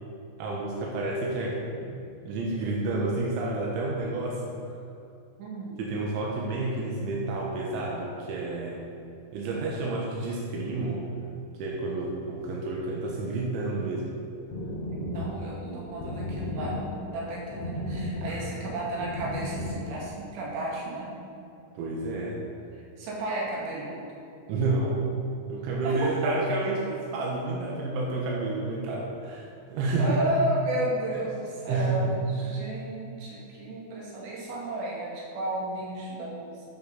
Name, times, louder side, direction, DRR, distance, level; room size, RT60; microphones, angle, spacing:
voice 1, 0.4-4.4 5.8-8.9 9.3-11.1 11.6-14.2 18.3-18.4 21.8-22.4 24.5-25.0 25.5-30.2 31.7-32.2 32.5-32.6, right 2 dB, 90° right, -3 dB, 3.6 m, -30 dB
voice 2, 5.4-5.8 14.9-21.1 22.7-24.0 25.8-26.4 30.0-36.6, right 1 dB, 70° right, -5 dB, 4.2 m, -33 dB
sound 1, 14.3-19.9, left 1 dB, 65° left, 2.0 m, -35 dB
12.0 x 9.1 x 4.0 m, 2.6 s
omnidirectional pair, 5.2 m